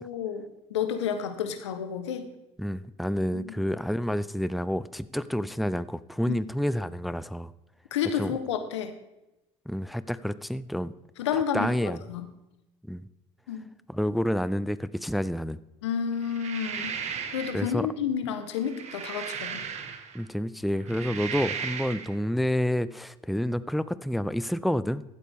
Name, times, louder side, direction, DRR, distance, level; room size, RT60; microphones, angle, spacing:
voice 1, 0.0-2.3 3.3-3.6 6.3-6.4 7.9-8.9 11.2-12.3 13.5-13.6 15.8-17.0 17.3-19.7, left 8 dB, 90° left, 9 dB, 1.0 m, -30 dB
voice 2, 2.6-7.5 8.1-8.3 9.7-10.9 11.3-12.0 12.9-13.1 13.9-15.6 17.5-17.9 20.1-25.0, equal, ahead, 16 dB, 0.4 m, -29 dB
sound 1, 16.2-17.7 18.5-20.2 20.7-22.1, right 7 dB, 50° right, 1.5 m, -36 dB
15.5 x 8.4 x 3.5 m, 0.95 s
hypercardioid pair, 65°, 14 cm